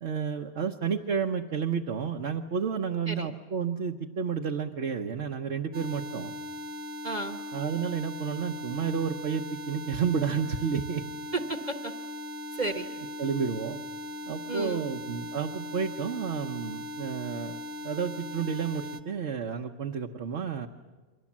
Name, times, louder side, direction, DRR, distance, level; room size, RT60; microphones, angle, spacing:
voice 1, 0.0-6.3 7.5-11.0 13.2-13.8 14.3-17.6 17.8-20.7, right 6 dB, 60° right, 1 dB, 1.3 m, -31 dB
sound 1, 5.7-19.0, left 1 dB, 90° right, 1.6 m, -39 dB
voice 2, 7.0-7.4 11.3-11.9 12.5-12.9 14.5-14.9, right 2 dB, 35° right, 6 dB, 1.3 m, -33 dB
29.5 x 24.0 x 7.4 m, 1.3 s
omnidirectional pair, 1.3 m